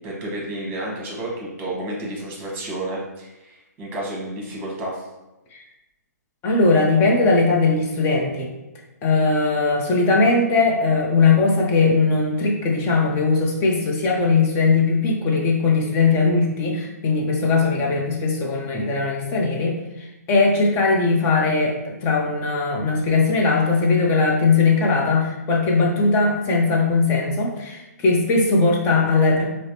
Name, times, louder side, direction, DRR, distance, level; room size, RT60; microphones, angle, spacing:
voice 1, 0.0-5.0, right 1 dB, 20° right, -3 dB, 1.1 m, -31 dB
voice 2, 6.4-8.5 9.0-29.5, left 3 dB, 25° left, -1 dB, 0.7 m, -19 dB
4.8 x 2.1 x 2.8 m, 1.0 s
hypercardioid pair, 135°, 9 cm